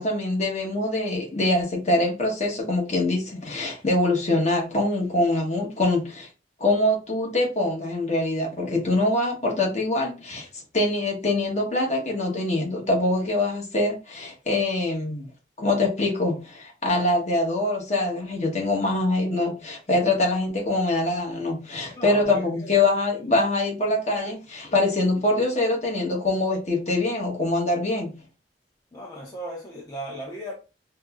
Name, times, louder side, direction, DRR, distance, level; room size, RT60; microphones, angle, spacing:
voice 1, 0.0-6.3 6.6-10.5 10.7-15.3 15.6-28.2, left 2 dB, 40° left, 1.0 m, -24 dB
voice 2, 22.0-23.2 28.9-30.5, right 1 dB, 20° left, 0.7 m, -37 dB
5.0 x 2.0 x 2.3 m
head